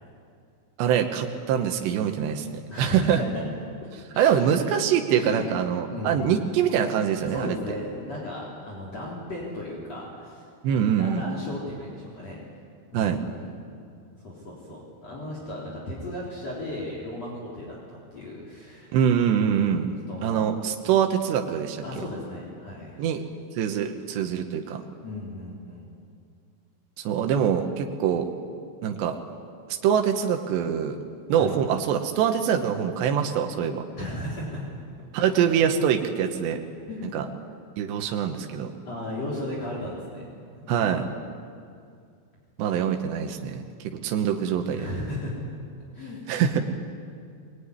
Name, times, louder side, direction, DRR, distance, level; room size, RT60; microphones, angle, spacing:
voice 1, 0.8-3.2 4.2-7.6 10.6-11.2 12.9-13.2 18.9-19.9 20.2-21.8 23.0-23.2 23.6-24.8 27.0-28.3 28.8-29.2 29.7-31.0 31.3-33.8 35.1-36.6 37.1-37.3 37.8-38.7 40.7-41.1 42.6-44.9 46.3-46.7, right 8 dB, 85° right, 4 dB, 3.4 m, -24 dB
voice 2, 2.7-3.2 4.1-4.5 5.1-5.4 5.9-6.3 7.2-10.4 10.7-12.4 12.9-13.5 14.2-19.0 19.5-20.4 21.8-23.0 25.0-25.9 31.4-31.5 34.0-34.6 35.1-35.3 36.9-37.2 38.9-40.3 40.6-40.8 44.7-45.3 45.9-46.2, left 1 dB, 40° left, -4 dB, 4.6 m, -36 dB
22.0 x 21.5 x 9.8 m, 2.3 s
omnidirectional pair, 4.8 m